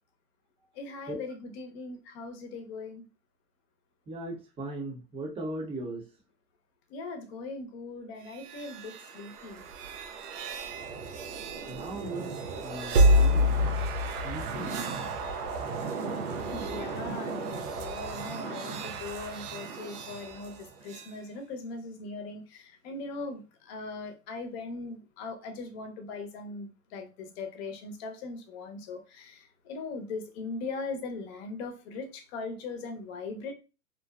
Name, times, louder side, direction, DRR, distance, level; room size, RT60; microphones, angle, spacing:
voice 1, 0.7-3.1 6.9-9.6 14.5-14.6 16.4-33.5, left 3 dB, 45° left, 0.7 m, -40 dB
voice 2, 4.1-6.1 11.7-12.3 12.6-13.5 14.2-14.8, right 2 dB, 15° right, 0.7 m, -38 dB
sound 1, 8.3-21.1, equal, 90° right, 0.6 m, -30 dB
2.6 x 2.1 x 2.3 m
hypercardioid pair, 125°, 44 cm